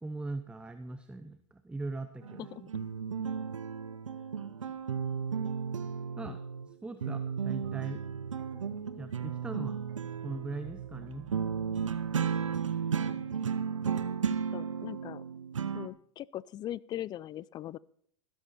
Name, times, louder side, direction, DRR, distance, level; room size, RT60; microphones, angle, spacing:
voice 1, 0.0-2.7 6.2-6.4 6.7-8.0 8.9-9.8 10.2-11.3, right 2 dB, 5° right, 10 dB, 0.8 m, -40 dB
sound 1, 2.2-6.7 7.0-15.9, right 7 dB, 90° right, 1.0 m, -34 dB
sound 2, 7.0-12.7, right 12 dB, 55° right, 1.1 m, -51 dB
voice 2, 14.5-15.2 15.7-17.8, left 12 dB, 25° left, 22 dB, 0.4 m, -40 dB
14.5 x 13.0 x 4.3 m, 0.63 s
hypercardioid pair, 110°, 16 cm